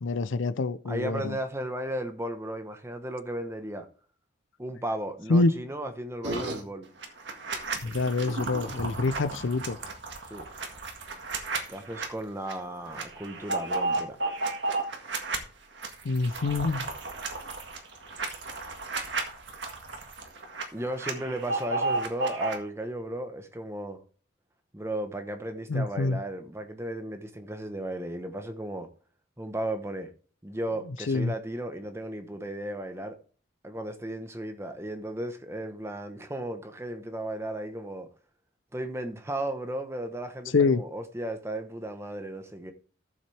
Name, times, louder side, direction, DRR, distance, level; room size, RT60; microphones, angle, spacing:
voice 1, 0.0-1.4 5.3-5.5 7.8-9.8 16.0-16.9 25.7-26.2 31.1-31.3 40.5-40.8, left 3 dB, 80° left, 0.6 m, -26 dB
voice 2, 0.9-3.9 4.6-6.9 10.3-10.4 11.7-14.2 20.7-24.0 24.7-28.9 29.4-30.1 30.4-33.1 33.6-38.1 38.7-42.7, right 1 dB, 15° right, 1.0 m, -35 dB
sound 1, 6.2-6.6 7.0-12.1 12.5-12.6 12.9-15.4 15.8-20.6 20.9-22.6, right 3 dB, 65° right, 1.8 m, -32 dB
13.5 x 7.3 x 3.4 m
head